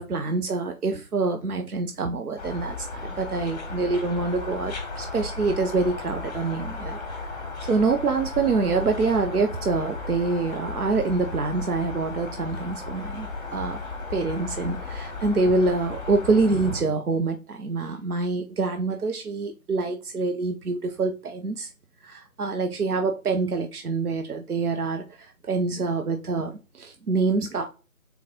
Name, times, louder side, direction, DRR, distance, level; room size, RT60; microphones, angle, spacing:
voice 1, 0.0-7.3 7.7-13.8 14.1-21.7 22.0-27.7, right 3 dB, 85° right, 0.7 m, -26 dB
sound 1, 2.4-16.8, left 3 dB, 30° left, 1.3 m, -35 dB
4.1 x 4.0 x 2.7 m
figure-of-eight pair, 145°, 43 cm